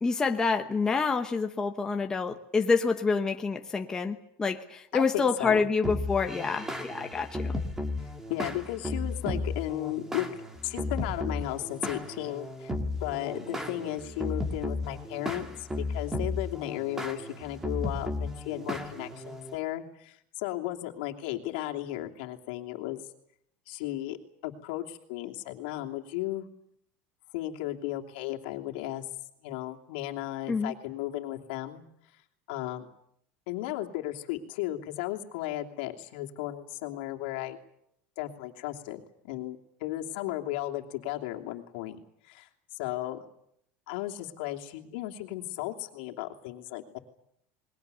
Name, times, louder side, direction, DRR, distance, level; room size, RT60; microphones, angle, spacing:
voice 1, 0.0-7.6 30.5-30.7, left 4 dB, 10° left, 4 dB, 1.0 m, -27 dB
voice 2, 4.9-5.7 8.3-10.3 10.6-12.7 13.0-23.0 23.7-24.2 24.4-26.5 27.3-29.0 29.4-31.8 32.5-32.9 33.5-37.6 38.2-42.0 42.3-42.5 42.8-43.2 43.9-47.0, left 15 dB, 75° left, 3 dB, 2.8 m, -35 dB
sound 1, 5.8-19.6, left 2 dB, 10° right, 2.0 m, -34 dB
28.5 x 21.5 x 7.0 m, 0.71 s
cardioid pair, 180°, 6 cm